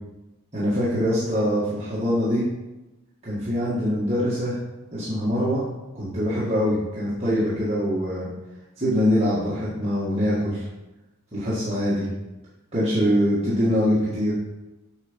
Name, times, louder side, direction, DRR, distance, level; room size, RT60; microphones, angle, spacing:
voice 1, 0.5-2.4 3.2-4.6 4.9-5.6 5.9-8.3 8.8-10.6 11.3-12.0 12.7-14.3, equal, 30° right, -11 dB, 1.9 m, -23 dB
8.2 x 4.2 x 5.3 m, 1.0 s
head